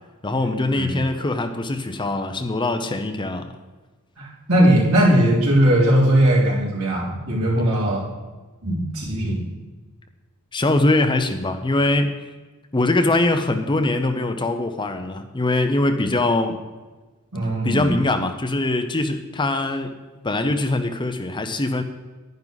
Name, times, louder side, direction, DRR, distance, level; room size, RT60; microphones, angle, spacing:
voice 1, 0.2-3.5 10.5-12.1 12.7-16.6 17.6-19.9 20.2-21.8, left 2 dB, 20° left, 7 dB, 0.7 m, -22 dB
voice 2, 4.2-8.1 8.6-9.4 17.3-17.9, right 1 dB, 75° right, -5 dB, 4.0 m, -19 dB
10.5 x 10.5 x 4.0 m, 1.3 s
head